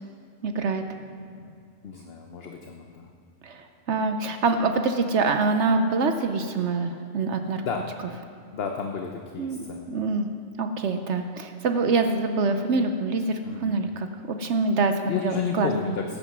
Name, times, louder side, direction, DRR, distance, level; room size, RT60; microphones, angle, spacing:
voice 1, 0.4-0.8 3.4-7.6 9.4-9.6 9.9-10.3 10.6-15.0 15.2-15.7, right 3 dB, 65° right, 7 dB, 0.9 m, -25 dB
voice 2, 1.0-1.4 1.8-3.1 7.6-7.9 8.5-9.9 13.4-13.8 15.0-16.2, left 6 dB, 55° left, 3 dB, 1.0 m, -32 dB
15.5 x 9.0 x 6.0 m, 2.3 s
omnidirectional pair, 1.3 m